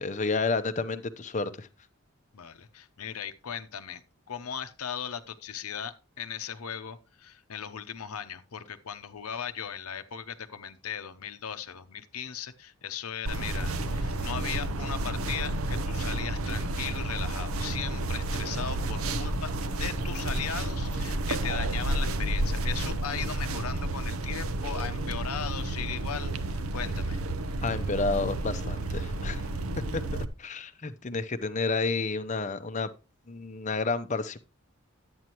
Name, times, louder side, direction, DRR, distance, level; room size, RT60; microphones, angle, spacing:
voice 1, 0.0-1.7 27.6-29.4 29.9-30.0 30.4-32.9 33.3-34.4, left 3 dB, 35° left, 0.6 m, -30 dB
voice 2, 2.3-19.5 19.8-27.2, left 8 dB, 90° left, 0.8 m, -38 dB
sound 1, 13.3-30.2, right 2 dB, 80° right, 0.8 m, -31 dB
11.0 x 8.7 x 3.0 m
head